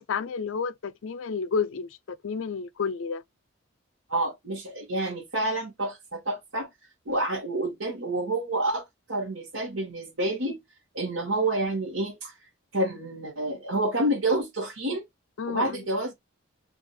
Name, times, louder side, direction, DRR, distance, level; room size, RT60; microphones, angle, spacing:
voice 1, 0.0-3.2 15.4-15.8, left 5 dB, 70° left, 0.4 m, -31 dB
voice 2, 4.1-6.7 7.1-10.6 10.9-12.3 12.7-15.0 15.5-16.1, right 1 dB, 85° right, 1.3 m, -28 dB
3.4 x 2.5 x 4.1 m
head